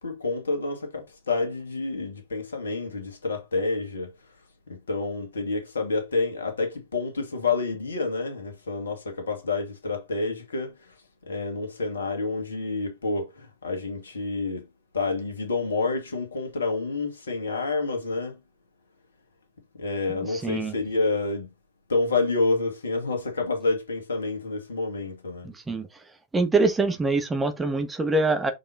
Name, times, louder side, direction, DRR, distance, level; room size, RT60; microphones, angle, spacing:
voice 1, 0.0-4.1 4.7-10.9 11.3-14.7 14.9-18.4 19.8-21.5 21.9-25.5, left 3 dB, 70° left, 1.9 m, -28 dB
voice 2, 20.4-20.7 25.7-25.9 26.3-28.5, right 3 dB, 10° right, 1.3 m, -24 dB
5.7 x 4.7 x 4.1 m
figure-of-eight pair, 90°, 0 cm